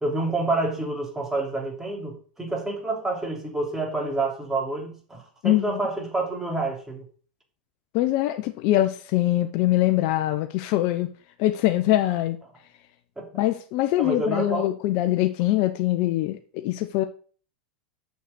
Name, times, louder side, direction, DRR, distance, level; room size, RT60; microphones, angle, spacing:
voice 1, 0.0-7.1 13.2-13.4 14.0-14.7, right 2 dB, 10° right, 0 dB, 3.1 m, -28 dB
voice 2, 5.4-5.8 7.9-11.1 11.4-12.4 13.3-17.0, left 15 dB, 50° left, 7 dB, 0.8 m, -23 dB
6.7 x 6.5 x 6.7 m, 0.43 s
hypercardioid pair, 105°, 5 cm